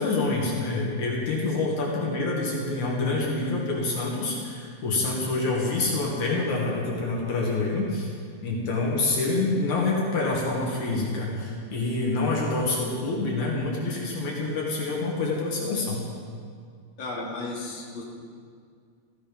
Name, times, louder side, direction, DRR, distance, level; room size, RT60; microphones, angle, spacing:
voice 1, 0.0-8.1 8.4-16.0, left 3 dB, 70° left, -3 dB, 3.5 m, -27 dB
voice 2, 17.0-18.0, left 2 dB, 40° left, -5 dB, 3.4 m, -35 dB
16.0 x 15.5 x 5.4 m, 2.1 s
omnidirectional pair, 3.5 m